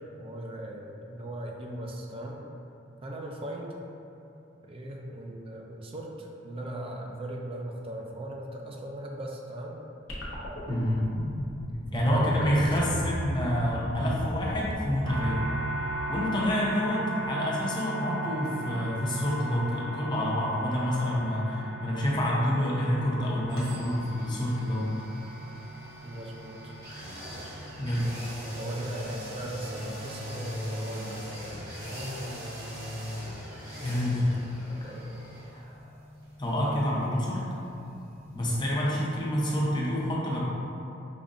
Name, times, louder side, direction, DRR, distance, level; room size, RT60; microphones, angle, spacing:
voice 1, 0.1-2.4 3.0-3.8 4.6-9.8 11.9-13.1 26.0-26.8 27.3-27.7 28.6-31.2 34.7-35.2, right 1 dB, 30° right, 0 dB, 0.4 m, -38 dB
sound 1, 10.1-16.6, equal, 70° left, 0.7 m, -37 dB
voice 2, 10.7-11.1 11.9-15.5 16.1-24.9 27.8-28.1 33.8-34.4 36.4-37.5 38.3-40.4, equal, 25° left, -5 dB, 0.6 m, -27 dB
sound 2, 15.0-32.8, right 2 dB, 80° right, 0.6 m, -39 dB
sound 3, 23.5-39.3 39.6-39.7, equal, 50° right, 1.2 m, -41 dB
5.2 x 2.5 x 2.4 m, 2.8 s
head